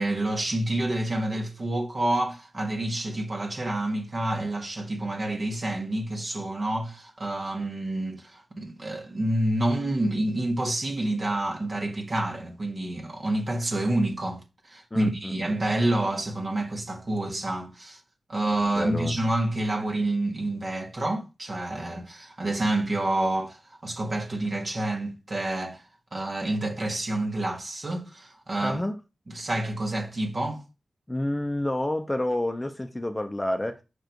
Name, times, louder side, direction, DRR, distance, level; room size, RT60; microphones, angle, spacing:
voice 1, 0.0-18.0 18.3-25.8 26.1-28.8 29.3-30.6, right 1 dB, 45° right, 1.9 m, -28 dB
voice 2, 14.9-15.3 18.8-19.1 28.6-29.0 31.1-33.8, left 1 dB, 15° left, 0.8 m, -29 dB
5.7 x 4.9 x 4.6 m
wide cardioid pair, 85°, 0 cm